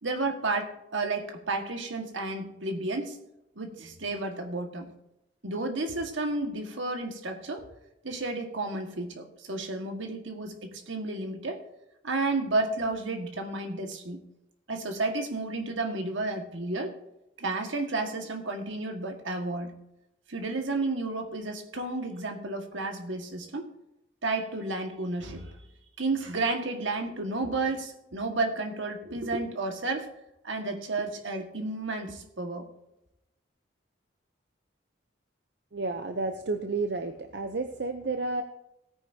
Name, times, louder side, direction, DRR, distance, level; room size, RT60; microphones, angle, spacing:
voice 1, 0.0-3.2 3.5-4.9 5.4-7.7 8.0-11.6 12.0-14.2 14.7-16.9 17.4-19.7 20.3-23.7 24.2-25.5 26.0-30.1 30.4-32.7, right 2 dB, 85° right, 4 dB, 1.7 m, -32 dB
voice 2, 35.7-38.4, right 3 dB, 60° right, 7 dB, 0.6 m, -31 dB
17.0 x 9.4 x 2.8 m, 0.86 s
head